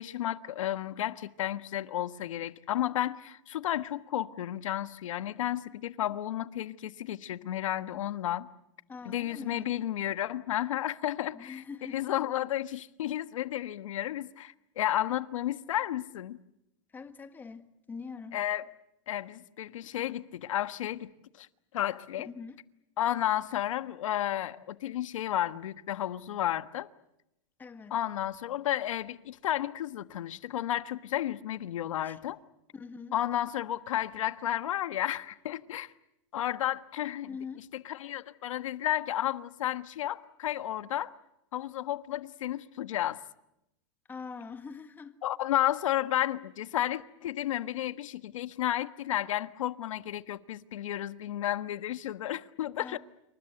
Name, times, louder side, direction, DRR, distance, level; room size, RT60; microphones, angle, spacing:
voice 1, 0.0-8.5 9.0-11.6 11.9-16.4 18.3-18.7 19.1-21.1 21.4-21.5 21.7-22.3 23.0-26.9 27.9-32.4 33.1-35.9 36.3-37.3 37.7-41.1 41.5-43.2 45.2-53.0, left 12 dB, 90° left, 1.3 m, -32 dB
voice 2, 8.9-9.7 11.3-12.0 16.9-18.4 22.2-22.6 27.6-27.9 32.0-32.2 32.7-33.1 37.3-37.7 44.1-45.2 52.8-53.0, left 5 dB, 10° left, 1.5 m, -43 dB
28.0 x 25.0 x 7.9 m
supercardioid pair, 160°, 16 cm